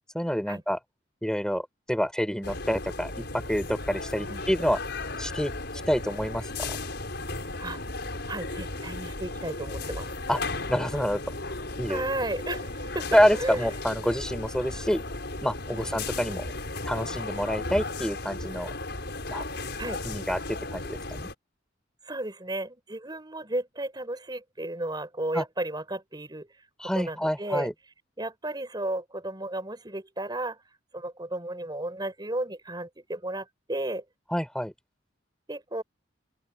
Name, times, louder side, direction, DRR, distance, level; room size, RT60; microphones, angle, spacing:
voice 1, 0.1-0.8 1.2-4.8 5.2-5.5 5.9-6.8 10.3-10.4 10.7-11.2 11.8-12.0 13.1-15.0 15.4-16.5 16.9-18.7 19.3-19.5 20.0-21.3 25.3-25.4 26.8-27.7 34.3-34.7, equal, 5° left, 4.2 m, -27 dB
sound 1, 2.4-21.3, left 2 dB, 60° left, 6.5 m, -35 dB
voice 2, 8.3-10.1 11.9-13.1 13.4-13.6 15.7-15.8 19.8-20.0 22.0-26.5 26.9-27.7 28.2-30.6 30.9-34.0 35.5-35.8, right 1 dB, 20° right, 4.8 m, -33 dB
open air
head